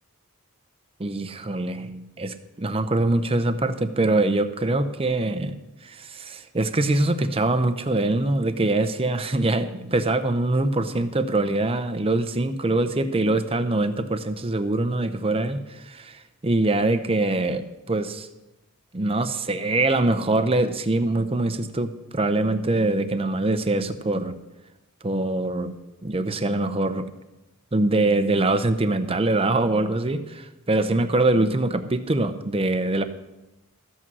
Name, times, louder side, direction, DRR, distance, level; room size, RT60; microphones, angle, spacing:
voice 1, 1.0-5.6 5.8-16.1 16.4-18.3 18.9-24.4 25.0-25.8 26.0-27.1 27.7-33.0, right 2 dB, 25° right, 10 dB, 0.7 m, -23 dB
14.0 x 8.4 x 6.2 m, 0.96 s
head